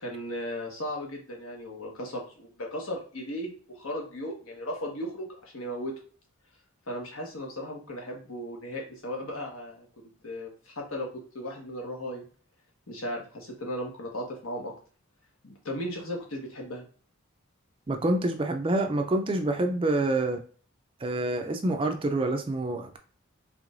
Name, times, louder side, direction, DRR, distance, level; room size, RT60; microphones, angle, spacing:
voice 1, 0.0-5.9 6.9-9.9 10.2-12.2 12.9-14.7 15.4-16.8, equal, 75° left, 0 dB, 1.3 m, -36 dB
voice 2, 17.9-20.4 21.0-23.0, right 2 dB, 25° right, 6 dB, 0.4 m, -27 dB
4.8 x 3.1 x 2.5 m, 0.42 s
head